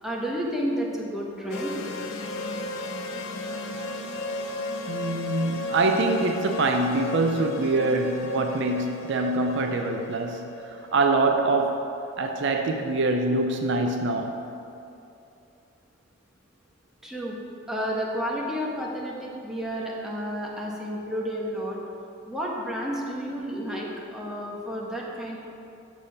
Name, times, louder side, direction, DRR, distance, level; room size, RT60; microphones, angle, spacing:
voice 1, 0.0-1.8 17.0-17.4 17.7-21.8 22.3-25.4, equal, 5° right, 1.2 m, -31 dB
sound 1, 1.5-11.9, left 2 dB, 90° left, 0.6 m, -35 dB
voice 2, 4.9-11.9 12.2-14.4, right 2 dB, 65° right, 0.6 m, -24 dB
6.9 x 6.6 x 5.7 m
head